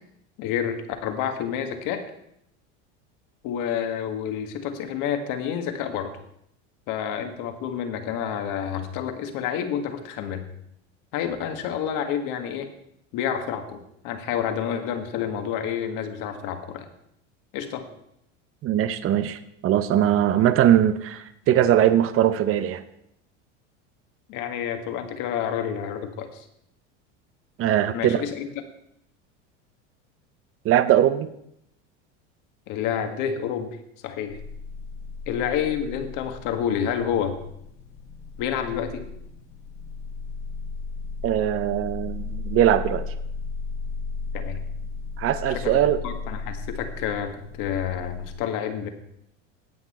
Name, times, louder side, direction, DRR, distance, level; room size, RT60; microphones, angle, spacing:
voice 1, 0.4-2.1 3.4-6.2 6.9-10.4 11.1-12.7 13.1-13.8 14.0-16.9 17.5-17.9 24.3-26.4 27.9-28.5 32.7-33.7 34.0-34.4 35.3-37.4 38.4-39.1 44.3-44.6 45.5-45.8 46.0-47.3 47.6-48.9, left 8 dB, 60° left, 7 dB, 1.8 m, -29 dB
voice 2, 18.6-22.8 27.6-28.2 30.6-31.3 41.2-43.0 45.2-46.0, right 11 dB, 40° right, 12 dB, 0.8 m, -21 dB
sound 1, 34.3-48.4, left 4 dB, 75° left, 2.1 m, -35 dB
17.0 x 6.1 x 4.3 m, 0.76 s
supercardioid pair, 105°, 36 cm